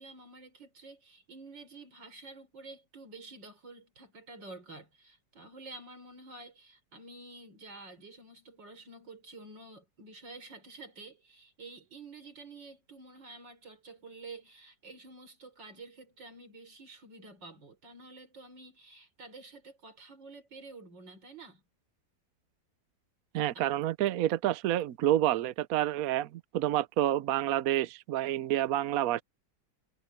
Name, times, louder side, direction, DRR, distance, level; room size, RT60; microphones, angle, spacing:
voice 1, 0.0-21.6 23.5-23.7, right 3 dB, 85° right, 4.8 m, -49 dB
voice 2, 23.3-29.2, right 13 dB, 65° right, 0.9 m, -28 dB
omnidirectional pair, 1.9 m